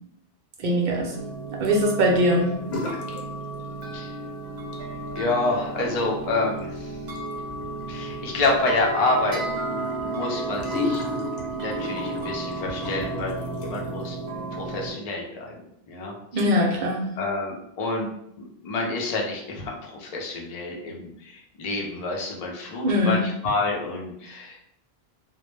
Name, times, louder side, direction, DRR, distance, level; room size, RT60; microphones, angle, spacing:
voice 1, 0.6-1.1 1.6-2.5 16.3-17.0 22.8-23.2, equal, 55° right, -1 dB, 0.6 m, -21 dB
sound 1, 1.1-14.9, right 2 dB, 75° right, 0.9 m, -33 dB
sound 2, 2.6-3.2 3.5-4.2 4.6-14.0, left 3 dB, 85° left, 0.8 m, -35 dB
voice 2, 5.1-6.9 7.9-9.4 9.7-11.0 11.5-14.2 14.5-15.6 15.9-16.1 17.2-24.6, left 2 dB, 50° left, 0 dB, 0.5 m, -28 dB
2.1 x 2.0 x 3.1 m, 0.77 s
omnidirectional pair, 1.1 m